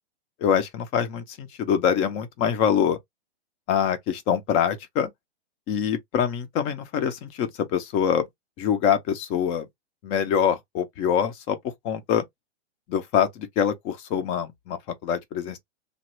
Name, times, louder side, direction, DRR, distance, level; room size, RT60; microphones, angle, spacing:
voice 1, 0.4-3.0 3.7-5.1 5.7-8.2 8.6-9.7 10.0-11.6 11.8-12.2 12.9-15.6, left 8 dB, 20° left, 0.4 m, -24 dB
3.0 x 2.3 x 2.9 m
hypercardioid pair, 135°, 33 cm